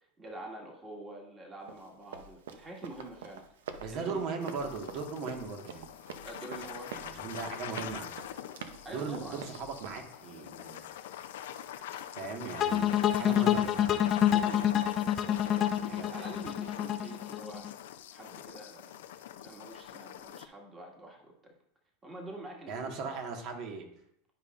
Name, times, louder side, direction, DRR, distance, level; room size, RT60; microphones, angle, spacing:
voice 1, 0.2-3.4 3.9-4.3 6.2-7.0 8.8-9.4 14.3-17.7 18.1-18.9 19.4-21.5 22.0-23.1, right 1 dB, 20° right, -1 dB, 1.9 m, -46 dB
Run, 1.7-10.1, right 6 dB, 85° right, 0.7 m, -46 dB
voice 2, 3.8-5.9 6.9-8.1 8.9-10.8 12.1-14.1 15.9-16.3 22.7-23.8, right 4 dB, 55° right, 3 dB, 1.6 m, -38 dB
sound 1, 4.4-20.4, left 11 dB, 80° left, 0.5 m, -44 dB
sound 2, 12.6-17.7, left 10 dB, 35° left, 0.5 m, -27 dB
11.0 x 5.4 x 2.5 m, 0.74 s
supercardioid pair, 120°, 0 cm